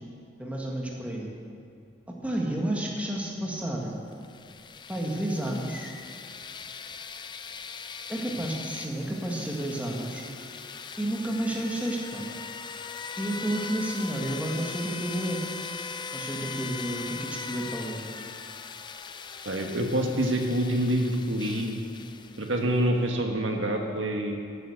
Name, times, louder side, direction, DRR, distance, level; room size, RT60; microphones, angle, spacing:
voice 1, 0.4-1.3 2.2-4.0 4.9-5.9 8.1-10.2 11.0-12.2 13.2-15.4 16.1-18.0, right 1 dB, 5° right, -2 dB, 1.6 m, -31 dB
sound 1, 4.1-22.8, left 5 dB, 25° left, 0.4 m, -40 dB
voice 2, 19.4-21.8 22.4-24.4, right 1 dB, 85° right, 2 dB, 1.5 m, -26 dB
14.0 x 9.3 x 6.5 m, 2.3 s
head